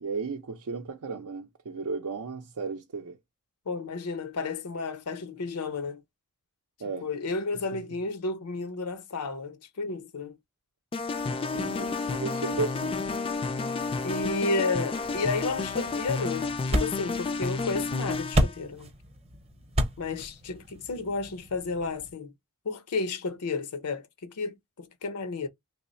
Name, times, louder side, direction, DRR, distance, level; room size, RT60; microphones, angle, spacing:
voice 1, 0.0-3.2 6.8-7.1 11.5-13.2, right 4 dB, 75° right, 0.5 m, -34 dB
voice 2, 3.7-6.0 7.0-10.4 14.0-18.9 20.0-22.3 22.6-25.5, left 3 dB, 85° left, 0.7 m, -32 dB
sound 1, 10.9-18.6, left 4 dB, 25° left, 0.3 m, -31 dB
sound 2, 15.0-22.1, equal, 25° right, 0.7 m, -33 dB
3.1 x 2.1 x 4.0 m
head